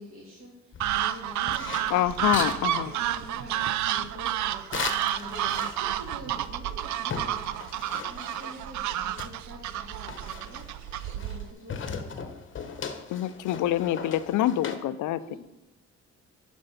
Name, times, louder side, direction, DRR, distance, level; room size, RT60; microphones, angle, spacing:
voice 1, 0.0-10.7 11.1-12.3 15.2-15.4, equal, 45° right, -6 dB, 2.9 m, -46 dB
sound 1, 0.7-2.6 4.7-6.1 6.4-6.5 6.8-8.7 9.2-11.4 11.7-14.8, left 6 dB, 40° left, 1.0 m, -38 dB
sound 2, 0.8-11.5, right 12 dB, 70° right, 0.5 m, -30 dB
voice 2, 1.9-2.9 13.1-15.4, left 12 dB, 80° left, 15 dB, 0.5 m, -26 dB
10.0 x 5.2 x 5.7 m, 0.98 s
cardioid pair, 90°, 30 cm